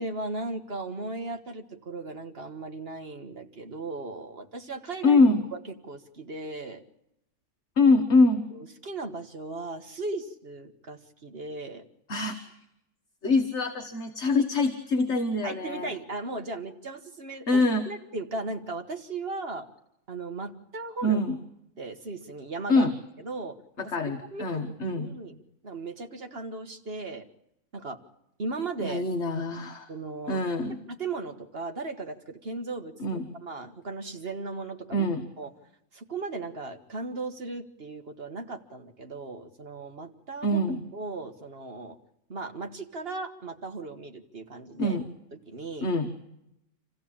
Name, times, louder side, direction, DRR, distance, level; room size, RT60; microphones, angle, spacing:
voice 1, 0.0-5.2 5.5-5.6 5.8-6.8 8.5-11.8 13.2-13.4 15.4-19.7 20.1-21.2 21.8-22.9 23.2-23.6 24.0-25.4 25.6-27.3 27.7-28.0 28.4-29.0 29.9-30.4 30.9-32.9 33.4-35.1 35.4-35.5 35.9-40.6 40.9-42.0 42.3-45.0 45.5-45.9, right 3 dB, 40° right, 6 dB, 1.8 m, -37 dB
voice 2, 5.0-5.4 7.8-8.5 12.1-12.4 13.2-15.9 17.5-17.8 21.0-21.4 22.7-22.9 23.8-25.1 28.8-29.9 30.3-30.8 33.0-33.3 34.9-35.3 40.4-40.8 44.8-45.0 45.8-46.1, left 2 dB, 50° left, 5 dB, 1.7 m, -24 dB
27.5 x 15.5 x 8.8 m, 0.84 s
omnidirectional pair, 1.6 m